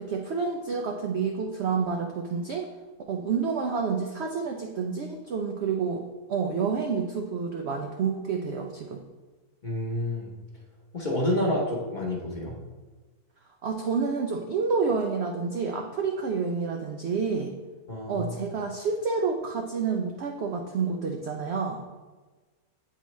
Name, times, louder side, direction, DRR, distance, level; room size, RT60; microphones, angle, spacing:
voice 1, 0.0-2.7 3.1-6.0 6.3-9.0 13.6-17.5 18.1-21.8, right 5 dB, 75° right, 3 dB, 0.6 m, -29 dB
voice 2, 9.6-10.3 10.9-12.6 17.9-18.3, left 1 dB, 35° left, -3 dB, 0.8 m, -28 dB
8.3 x 3.9 x 3.1 m, 1.3 s
omnidirectional pair, 1.7 m